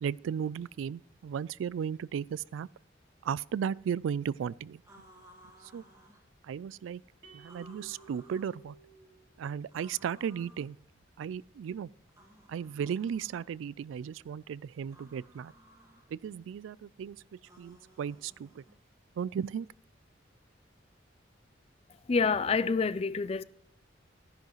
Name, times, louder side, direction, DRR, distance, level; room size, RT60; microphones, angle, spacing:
voice 1, 0.0-2.7 3.2-4.8 5.6-5.8 6.4-7.0 7.3-8.8 9.4-10.8 11.2-11.9 12.5-15.5 16.1-17.2 17.6-18.6 19.2-19.7, right 7 dB, 90° right, 0.3 m, -35 dB
sound 1, 4.8-6.3 7.4-8.6 9.7-10.7 12.1-13.5 14.8-16.1 17.4-18.8, right 1 dB, 15° right, 1.7 m, -58 dB
sound 2, 7.2-9.7, right 4 dB, 60° right, 2.6 m, -56 dB
voice 2, 22.1-23.4, left 4 dB, 30° left, 0.4 m, -27 dB
14.5 x 10.5 x 3.1 m
head